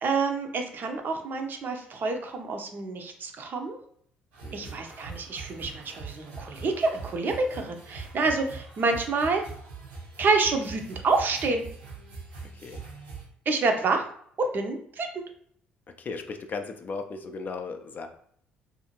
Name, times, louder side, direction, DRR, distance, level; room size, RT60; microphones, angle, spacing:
voice 1, 0.0-3.8 4.5-9.4 10.2-11.7 13.5-14.1 14.4-15.2, right 3 dB, 40° right, 4 dB, 0.5 m, -28 dB
sound 1, 4.3-13.3, right 4 dB, 80° right, 0.7 m, -42 dB
voice 2, 4.4-4.7 12.4-12.8 16.0-18.1, left 4 dB, 40° left, 6 dB, 0.4 m, -36 dB
2.6 x 2.4 x 2.8 m, 0.63 s
figure-of-eight pair, 50°, 5 cm